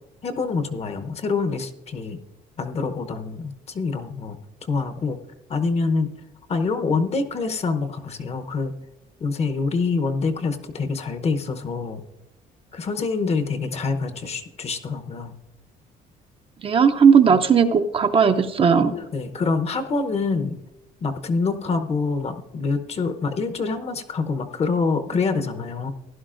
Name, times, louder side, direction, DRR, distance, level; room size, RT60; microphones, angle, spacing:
voice 1, 0.2-2.2 2.6-4.4 4.7-5.2 5.5-6.1 6.5-8.8 9.2-12.0 12.7-15.3 17.3-17.4 18.9-20.6 21.0-25.9, left 4 dB, 40° left, 9 dB, 0.9 m, -26 dB
voice 2, 16.6-18.9, right 6 dB, 35° right, 7 dB, 0.6 m, -16 dB
15.5 x 11.0 x 2.5 m, 0.94 s
cardioid pair, 110°, 17 cm